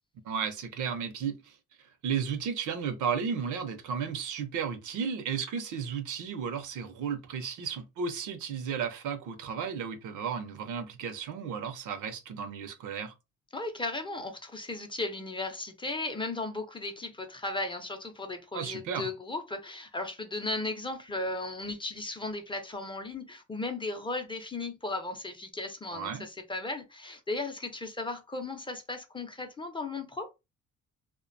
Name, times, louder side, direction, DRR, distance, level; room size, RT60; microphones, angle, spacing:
voice 1, 0.2-13.1 18.5-19.1 25.9-26.3, right 7 dB, 80° right, 0.6 m, -34 dB
voice 2, 13.5-30.3, left 2 dB, 15° left, 0.5 m, -36 dB
2.4 x 2.2 x 2.5 m
cardioid pair, 90°, 30 cm